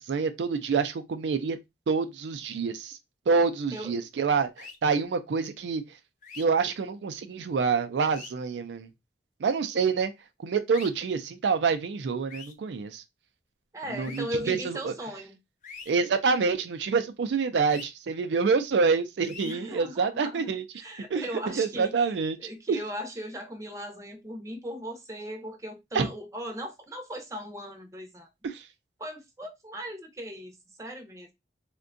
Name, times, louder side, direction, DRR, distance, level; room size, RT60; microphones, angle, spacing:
voice 1, 0.0-1.6 1.9-3.0 3.3-5.8 6.4-8.9 9.4-10.1 10.4-13.0 13.9-14.9 15.9-20.6 21.1-21.2 21.6-22.4 22.7-22.8 25.9-26.1 28.4-28.6, right 5 dB, 85° right, 0.4 m, -27 dB
sound 1, 4.6-4.8 6.2-6.4 8.0-8.3 10.7-10.9 12.3-12.5 14.0-14.2 15.6-15.9 17.7-17.9 19.2-19.5, left 5 dB, 45° left, 0.5 m, -43 dB
voice 2, 13.7-15.4 19.4-28.3 29.0-31.3, equal, 15° right, 0.6 m, -38 dB
3.5 x 2.2 x 2.5 m
head